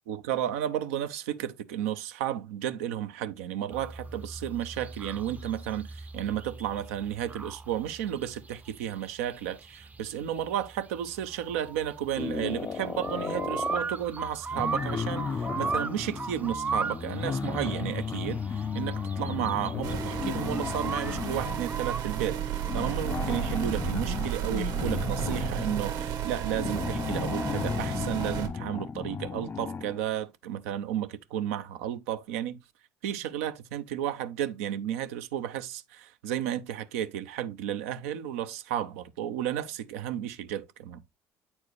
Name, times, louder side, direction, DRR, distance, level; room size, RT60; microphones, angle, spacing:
voice 1, 0.1-32.6 33.0-41.0, right 10 dB, 85° right, 0.6 m, -33 dB
sound 1, 3.7-22.0, right 4 dB, 20° right, 0.5 m, -38 dB
sound 2, 12.2-13.9 14.5-21.7 22.6-30.0, left 6 dB, 30° left, 0.4 m, -34 dB
sound 3, 19.8-28.5, right 9 dB, 65° right, 1.4 m, -33 dB
8.5 x 4.4 x 3.2 m
hypercardioid pair, 70°, 7 cm